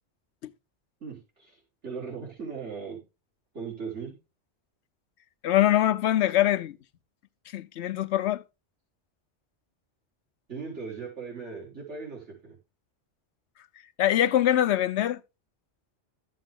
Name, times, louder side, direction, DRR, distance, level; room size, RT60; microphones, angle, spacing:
voice 1, 1.0-3.0 3.5-4.2 10.5-12.6, right 5 dB, 80° right, 4.0 m, -38 dB
voice 2, 5.4-6.8 7.5-8.4 14.0-15.2, left 12 dB, 75° left, 1.0 m, -23 dB
12.5 x 7.6 x 3.6 m
omnidirectional pair, 1.2 m